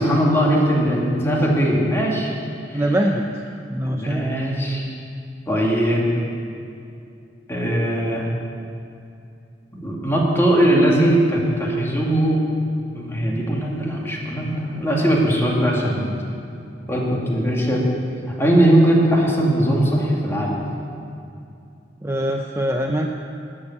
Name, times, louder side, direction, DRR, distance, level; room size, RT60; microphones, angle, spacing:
voice 1, 0.0-2.3 2.7-2.8 3.8-4.8 5.5-6.1 7.5-8.3 9.7-12.4 12.9-16.2 16.9-17.8 18.4-20.6, right 1 dB, 15° left, -3 dB, 2.3 m, -20 dB
voice 2, 2.7-3.4 3.7-4.3 22.0-23.1, right 1 dB, 15° right, 2 dB, 0.6 m, -23 dB
13.5 x 7.2 x 9.9 m, 2.5 s
head